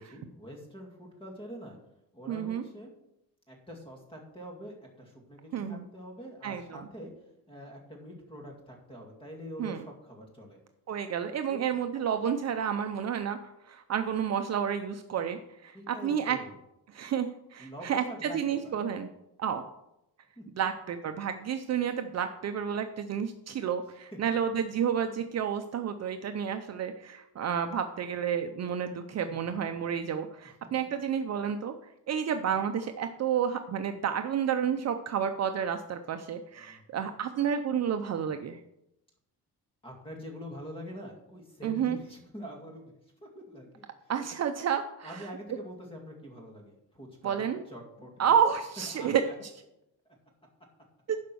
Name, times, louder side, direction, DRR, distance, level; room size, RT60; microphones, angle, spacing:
voice 1, 0.0-1.8 2.1-2.9 3.5-7.1 7.5-10.6 11.5-11.7 15.7-16.6 17.6-18.4 18.6-18.7 20.4-20.5 24.1-24.2 28.9-29.5 36.6-37.1 39.8-42.9 43.2-44.1 45.0-48.3 48.9-49.3, equal, 15° left, 1 dB, 2.2 m, -45 dB
voice 2, 2.3-2.6 5.5-5.8 6.4-6.8 9.6-9.8 10.9-16.4 16.9-19.1 19.4-19.7 20.6-31.8 32.1-38.6 41.6-42.0 44.1-45.2 47.2-47.6 48.2-49.2 51.1-51.2, right 8 dB, 45° right, 7 dB, 0.6 m, -30 dB
11.5 x 5.1 x 6.2 m, 0.83 s
cardioid pair, 165°, 38 cm